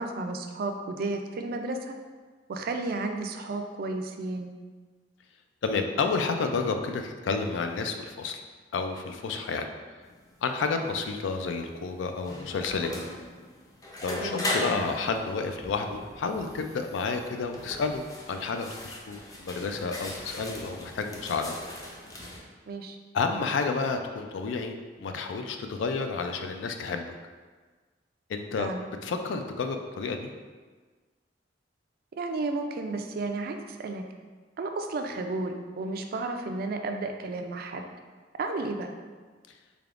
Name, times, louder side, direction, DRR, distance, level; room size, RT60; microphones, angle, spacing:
voice 1, 0.0-1.9 2.5-4.5 14.2-14.5 22.7-23.0 28.6-28.9 32.2-34.0 34.6-37.8 38.4-39.0, right 3 dB, 55° right, 5 dB, 0.3 m, -32 dB
voice 2, 5.6-8.4 8.7-9.7 10.4-12.9 14.0-21.6 23.1-27.1 28.3-28.7 29.0-30.3, left 4 dB, 80° left, 6 dB, 0.3 m, -30 dB
sound 1, 10.0-22.4, left 1 dB, 20° left, 0.4 m, -38 dB
3.7 x 3.4 x 2.4 m, 1.4 s
head